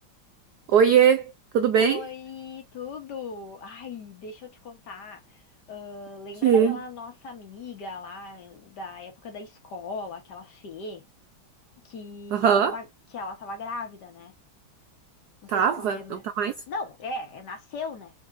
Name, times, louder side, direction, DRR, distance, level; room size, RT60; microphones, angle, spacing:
voice 1, 0.7-2.0 6.4-6.8 12.3-12.8 15.5-16.5, right 8 dB, 85° right, 0.8 m, -21 dB
voice 2, 1.8-5.4 5.7-11.0 11.8-12.9 13.1-14.3 15.4-16.3 16.7-18.1, left 3 dB, 55° left, 1.6 m, -38 dB
4.7 x 3.5 x 2.5 m
omnidirectional pair, 2.4 m